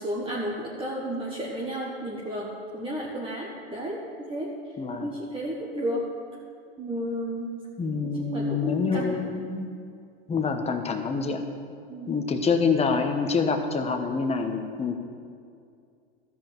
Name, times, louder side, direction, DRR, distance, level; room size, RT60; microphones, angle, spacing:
voice 1, 0.0-6.1 6.8-7.7 8.0-9.2 11.9-12.1, equal, 15° right, -3 dB, 1.4 m, -32 dB
voice 2, 4.8-5.1 7.8-9.7 10.3-11.4 12.1-15.0, left 5 dB, 20° left, 5 dB, 1.1 m, -26 dB
13.5 x 5.3 x 7.4 m, 2.4 s
hypercardioid pair, 110°, 30 cm